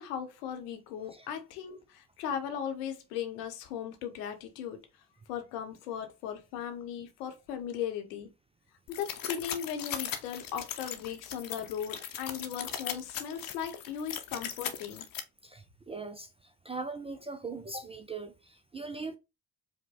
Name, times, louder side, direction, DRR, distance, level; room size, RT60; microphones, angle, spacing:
voice 1, 0.0-4.8 5.3-8.3 8.9-15.1, left 8 dB, 70° left, 0.9 m, -37 dB
sound 1, 8.9-15.2, left 9 dB, 45° left, 0.8 m, -38 dB
voice 2, 15.4-19.2, right 3 dB, 15° right, 0.3 m, -40 dB
4.9 x 2.1 x 3.7 m
figure-of-eight pair, 40°, 48 cm